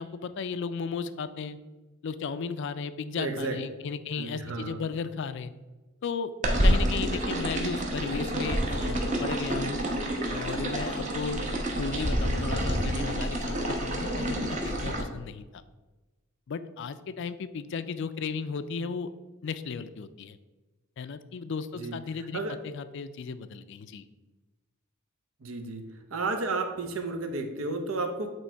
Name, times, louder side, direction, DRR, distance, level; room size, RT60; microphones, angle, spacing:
voice 1, 0.0-1.6 2.0-5.5 6.0-6.3 6.6-9.8 10.3-11.5 11.8-15.6 16.5-19.1 19.4-20.4 21.0-24.1, left 5 dB, 60° left, 12 dB, 0.4 m, -35 dB
voice 2, 3.2-3.6 4.2-4.9 21.7-22.0 22.3-22.6 25.4-25.9 26.1-28.3, right 3 dB, 75° right, 6 dB, 0.8 m, -32 dB
sound 1, 6.4-15.0, right 1 dB, 35° right, 1.0 m, -28 dB
8.5 x 3.1 x 4.5 m, 1.2 s
head